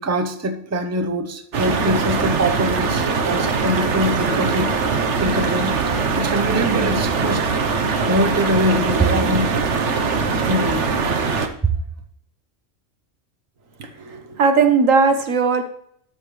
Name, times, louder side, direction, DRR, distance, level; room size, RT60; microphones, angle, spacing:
voice 1, 0.0-4.7 5.2-5.8 6.2-7.5 8.1-9.5 10.5-11.2 11.7-11.8, equal, 15° right, 0.7 m, -23 dB
sound 1, 1.5-11.5, right 4 dB, 65° right, 1.3 m, -21 dB
voice 2, 13.8-15.6, right 5 dB, 85° right, 1.6 m, -18 dB
13.0 x 5.7 x 3.2 m
omnidirectional pair, 1.3 m